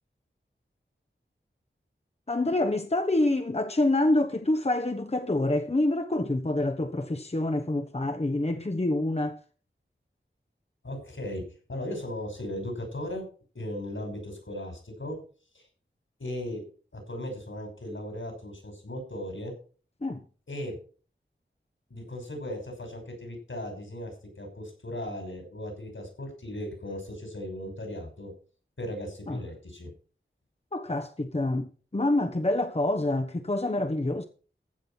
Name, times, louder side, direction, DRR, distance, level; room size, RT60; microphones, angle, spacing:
voice 1, 2.3-9.4 20.0-20.2 29.3-29.4 30.7-34.2, left 2 dB, 30° left, 1.0 m, -27 dB
voice 2, 10.8-11.4 11.7-13.2 13.5-15.2 15.5-15.6 16.2-16.6 16.9-19.5 20.5-20.8 21.9-28.3 28.8-29.9, left 1 dB, 75° left, 5.8 m, -37 dB
15.0 x 6.0 x 5.7 m
wide cardioid pair, 50°, 20 cm